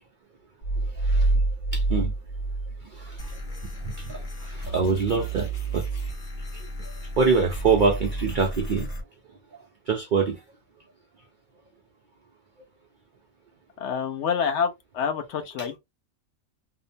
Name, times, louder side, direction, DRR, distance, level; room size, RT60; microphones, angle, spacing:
sound 1, 0.6-3.4, right 2 dB, 90° left, 1.3 m, -25 dB
voice 1, 1.7-2.1 2.9-3.2 4.0-5.8 6.5-6.6 7.2-8.9 9.9-10.4, right 5 dB, 85° right, 0.4 m, -24 dB
sound 2, 3.2-9.0, right 3 dB, 45° left, 1.1 m, -33 dB
voice 2, 13.8-15.8, left 6 dB, 65° left, 0.8 m, -27 dB
2.8 x 2.0 x 2.6 m
omnidirectional pair, 1.4 m